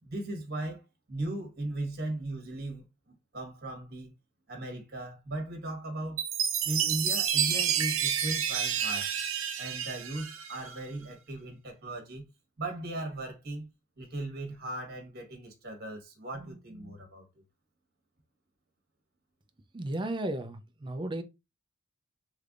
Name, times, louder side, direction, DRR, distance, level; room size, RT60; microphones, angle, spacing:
voice 1, 0.0-4.1 4.5-6.2 6.6-9.1 9.6-12.3 12.6-13.7 14.0-17.3, right 1 dB, 50° right, 1.3 m, -37 dB
Chime, 6.2-10.8, right 8 dB, 75° right, 0.6 m, -29 dB
voice 2, 19.7-21.2, right 1 dB, 25° right, 0.5 m, -34 dB
3.3 x 3.3 x 2.5 m
head